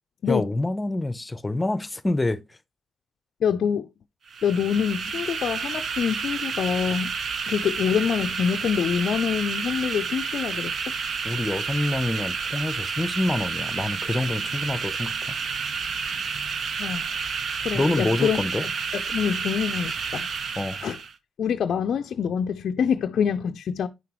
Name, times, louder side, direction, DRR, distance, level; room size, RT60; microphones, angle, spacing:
voice 1, 0.3-2.4 11.2-15.4 17.7-18.7 20.6-20.8, left 2 dB, 25° left, 0.7 m, -26 dB
voice 2, 3.4-3.9 4.4-7.1 7.5-10.7 16.8-17.1 17.6-20.3 20.8-21.0 21.4-23.9, left 7 dB, 70° left, 0.4 m, -26 dB
gas-cooker, 4.3-21.1, right 5 dB, 60° right, 0.7 m, -30 dB
9.4 x 5.9 x 3.0 m
supercardioid pair, 55°, 0 cm